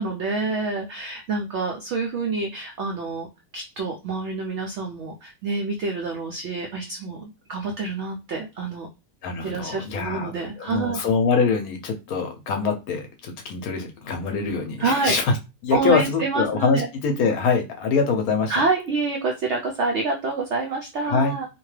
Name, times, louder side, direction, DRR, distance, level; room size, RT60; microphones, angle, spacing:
voice 1, 0.0-3.3 3.5-8.9 9.4-11.0 14.8-15.1 15.7-16.9 18.5-21.5, right 3 dB, 75° right, 0.6 m, -27 dB
voice 2, 9.2-10.3 10.6-15.3 15.6-18.5 21.1-21.3, left 5 dB, 70° left, 1.0 m, -24 dB
2.8 x 2.2 x 3.1 m
omnidirectional pair, 1.8 m